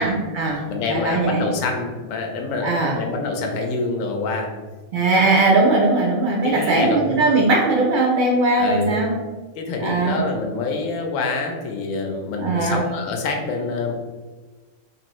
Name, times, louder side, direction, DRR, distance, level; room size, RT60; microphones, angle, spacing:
voice 1, 0.0-0.6 0.9-1.4 2.6-3.0 4.9-9.1 9.8-10.2 12.4-12.8, right 2 dB, 85° right, -2 dB, 0.4 m, -19 dB
voice 2, 0.7-4.5 6.4-7.2 8.6-9.0 9.6-13.9, left 3 dB, 70° left, 3 dB, 0.9 m, -26 dB
2.9 x 2.6 x 3.0 m, 1.3 s
omnidirectional pair, 1.5 m